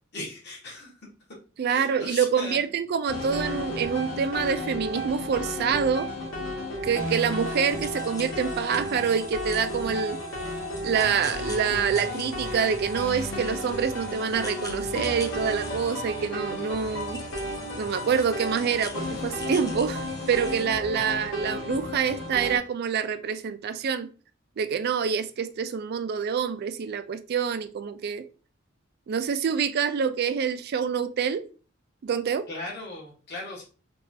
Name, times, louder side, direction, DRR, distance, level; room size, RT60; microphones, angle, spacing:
voice 1, 0.1-0.9 1.7-2.7 32.5-33.6, left 2 dB, 55° left, 1.3 m, -37 dB
voice 2, 1.6-6.1 6.8-10.2 10.8-17.2 17.7-24.1 24.6-28.2 29.1-31.4 32.0-32.5, right 7 dB, 50° right, 0.3 m, -26 dB
sound 1, 3.1-22.6, left 1 dB, 70° left, 1.2 m, -33 dB
sound 2, 7.2-20.7, left 3 dB, 15° left, 0.5 m, -45 dB
3.8 x 2.4 x 2.7 m
head